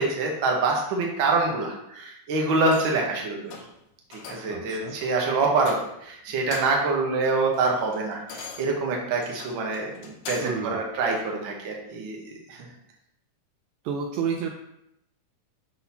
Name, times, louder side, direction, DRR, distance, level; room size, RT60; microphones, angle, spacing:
voice 1, 0.0-3.5 4.1-12.7, right 3 dB, 60° right, 0 dB, 1.3 m, -26 dB
sound 1, 2.6-3.1 3.5-3.8 4.1-4.6 5.0-5.1 5.6-6.1 6.4-6.9 7.3-10.7 11.2-11.3, left 4 dB, 75° left, 2.3 m, -41 dB
voice 2, 4.5-4.9 10.4-10.8 13.8-14.5, right 6 dB, 85° right, 2 dB, 1.5 m, -30 dB
11.5 x 3.9 x 2.9 m, 0.79 s
omnidirectional pair, 3.8 m